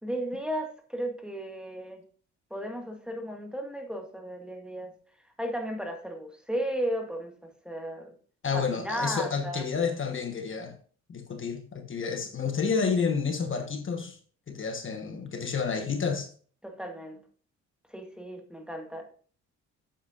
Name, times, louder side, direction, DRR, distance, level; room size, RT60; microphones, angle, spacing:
voice 1, 0.0-2.0 2.5-4.9 5.4-8.1 8.5-9.7 16.6-17.2 17.9-19.1, equal, 5° right, 1.7 m, -35 dB
voice 2, 8.4-10.8 11.1-14.2 14.5-16.3, left 5 dB, 40° left, 1.3 m, -30 dB
8.7 x 7.9 x 2.5 m
cardioid pair, 90°, 30 cm